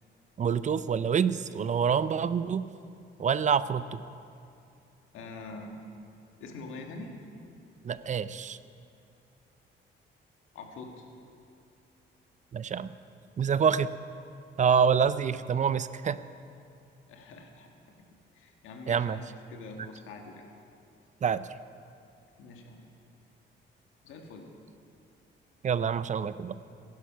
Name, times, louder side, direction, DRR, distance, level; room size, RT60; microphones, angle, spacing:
voice 1, 0.4-2.6 3.2-4.0 7.8-8.6 12.5-12.9 13.4-13.9 14.6-16.2 18.9-19.2 21.2-21.4 25.6-26.6, right 7 dB, 40° right, 14 dB, 0.5 m, -26 dB
voice 2, 5.1-5.8 6.4-7.1 10.5-11.1 17.1-17.7 18.3-20.5 22.4-22.8 24.0-24.5, left 3 dB, 90° left, 2 dB, 1.7 m, -44 dB
16.0 x 11.5 x 5.7 m, 2.5 s
cardioid pair, 90°, 20 cm